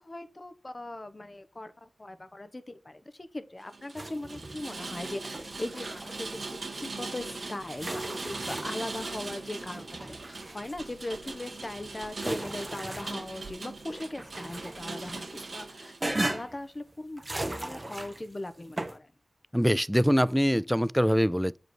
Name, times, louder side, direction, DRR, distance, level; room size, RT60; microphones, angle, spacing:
voice 1, 0.0-10.2 10.5-19.1, left 1 dB, 40° left, 1.2 m, -39 dB
Rain, 3.7-16.0, right 3 dB, 75° right, 1.7 m, -40 dB
sound 1, 4.0-4.7 5.0-6.2 7.3-7.4 7.8-9.0 9.5-10.9 11.5-13.5 13.9-15.5 16.0-16.6 17.2-18.3 18.8-19.0, right 1 dB, 30° right, 1.0 m, -37 dB
voice 2, 19.5-21.6, equal, ahead, 0.3 m, -24 dB
7.8 x 5.0 x 4.5 m
cardioid pair, 45°, 0 cm